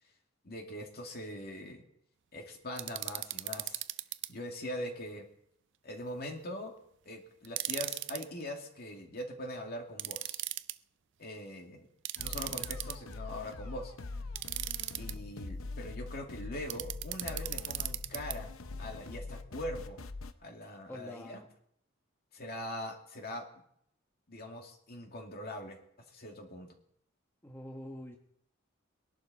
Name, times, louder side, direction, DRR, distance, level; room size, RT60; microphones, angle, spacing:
voice 1, 0.4-1.8 2.3-3.8 4.3-5.3 5.8-6.8 7.1-10.4 11.2-11.9 12.2-13.9 15.0-18.5 18.8-20.0 20.4-21.4 22.3-23.4 24.3-25.8 26.1-26.7, left 1 dB, 50° left, 2 dB, 2.3 m, -42 dB
sound 1, 2.8-4.3 7.4-8.3 10.0-10.7 12.1-13.1 14.4-15.1 16.7-18.4, right 16 dB, 60° right, 0.5 m, -37 dB
sound 2, 12.2-20.3, left 3 dB, 80° left, 0.8 m, -43 dB
voice 2, 20.9-21.5 27.4-28.2, left 1 dB, 10° left, 2 dB, 1.1 m, -45 dB
22.0 x 11.5 x 4.2 m, 0.71 s
head